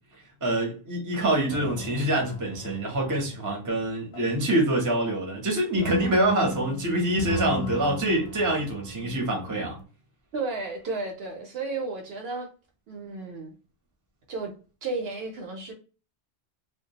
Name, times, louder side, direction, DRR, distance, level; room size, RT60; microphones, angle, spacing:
voice 1, 0.4-9.8, right 1 dB, 20° right, 0.6 m, -25 dB
sound 1, 1.5-4.5 5.8-9.8, left 2 dB, 60° left, 0.6 m, -35 dB
voice 2, 10.3-12.5 12.9-13.5 14.3-14.5 14.8-15.7, right 3 dB, 65° right, 0.8 m, -33 dB
2.2 x 2.1 x 2.7 m
omnidirectional pair, 1.2 m